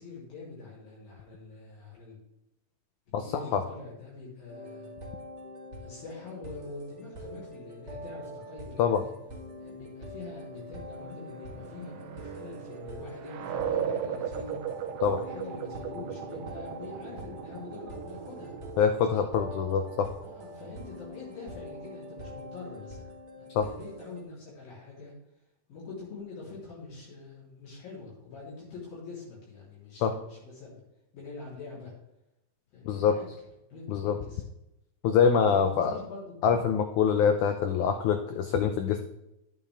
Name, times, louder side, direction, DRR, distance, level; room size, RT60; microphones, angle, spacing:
voice 1, 0.0-2.2 3.1-4.9 5.8-9.1 9.6-14.6 15.1-18.6 20.2-25.1 25.7-30.8 31.1-31.9 32.7-33.3 33.7-34.4 35.5-36.4 37.0-37.3, left 4 dB, 70° left, -6 dB, 5.0 m, -44 dB
sound 1, 4.5-24.2, equal, 65° right, 0.6 m, -44 dB
sound 2, 10.9-22.3, right 8 dB, 90° right, 1.5 m, -38 dB
voice 2, 18.8-20.1 23.6-23.7 30.0-30.1 32.9-33.2 33.9-34.2 35.0-35.9 36.4-39.0, left 7 dB, 85° left, 7 dB, 1.7 m, -24 dB
10.5 x 8.7 x 3.4 m, 0.88 s
omnidirectional pair, 4.2 m